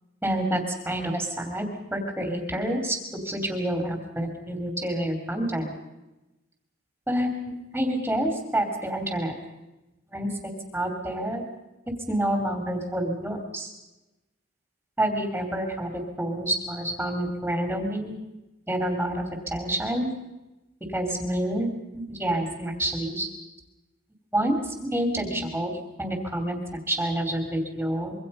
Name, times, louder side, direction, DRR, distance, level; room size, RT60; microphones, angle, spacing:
voice 1, 0.2-3.0 3.2-5.7 7.1-9.3 10.1-10.3 10.7-11.4 12.1-13.7 15.0-18.1 18.7-20.1 20.9-21.7 21.9-23.3 24.3-25.7 26.0-26.6 26.9-28.1, right 1 dB, 5° right, 4 dB, 2.9 m, -28 dB
25.5 x 23.5 x 5.5 m, 1.0 s
head